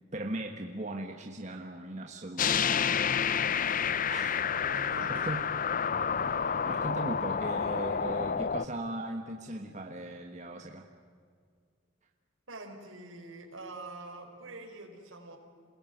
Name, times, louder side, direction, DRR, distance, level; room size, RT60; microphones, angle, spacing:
voice 1, 0.1-3.0 4.1-4.4 5.0-5.5 6.4-10.8, right 1 dB, 35° right, 3 dB, 1.4 m, -38 dB
sound 1, 2.4-8.7, left 7 dB, 40° left, 0.6 m, -29 dB
voice 2, 4.6-5.4 12.5-15.4, right 2 dB, 70° right, 2 dB, 4.7 m, -45 dB
28.0 x 21.0 x 9.4 m, 2.1 s
head